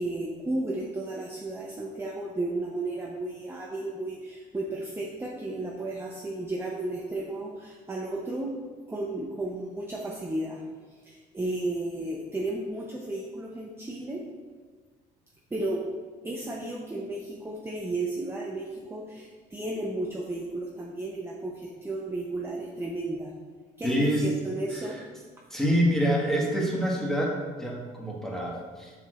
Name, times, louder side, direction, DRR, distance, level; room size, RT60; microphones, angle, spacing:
voice 1, 0.0-8.5 8.9-10.6 11.1-14.2 15.5-15.8 16.2-23.3 23.8-25.0, right 2 dB, 15° right, -2 dB, 0.7 m, -33 dB
voice 2, 23.8-24.3 24.7-24.8 25.5-28.9, equal, 5° left, -3 dB, 1.4 m, -26 dB
7.1 x 5.9 x 2.4 m, 1.4 s
cardioid pair, 110°, 17 cm